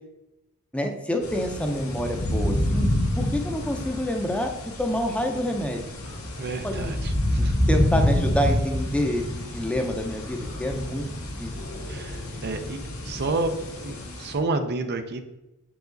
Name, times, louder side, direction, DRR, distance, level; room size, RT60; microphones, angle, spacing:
voice 1, 0.7-2.9 3.2-5.8 6.6-7.0 7.4-11.0 11.4-11.5, equal, 5° left, 4 dB, 0.6 m, -27 dB
sound 1, 1.2-14.3, left 1 dB, 85° left, 1.5 m, -28 dB
voice 2, 6.4-7.5 11.9-15.2, right 3 dB, 50° right, 8 dB, 0.5 m, -30 dB
7.3 x 4.8 x 3.9 m, 0.97 s
head